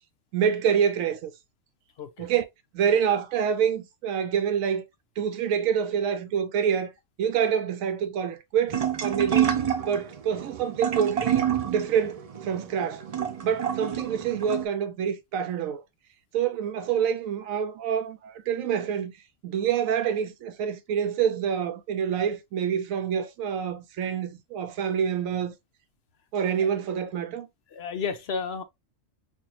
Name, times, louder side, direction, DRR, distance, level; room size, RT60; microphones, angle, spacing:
voice 1, 0.3-1.3 2.2-2.4 2.7-4.8 5.2-6.9 7.2-9.6 9.9-13.1 13.4-15.8 16.3-19.1 19.4-25.5 26.3-27.5, right 8 dB, 90° right, 1.0 m, -27 dB
voice 2, 2.0-2.3 27.7-28.6, left 5 dB, 60° left, 0.8 m, -32 dB
sound 1, 8.7-14.7, right 9 dB, 70° right, 0.3 m, -28 dB
4.4 x 2.5 x 2.9 m
omnidirectional pair, 1.4 m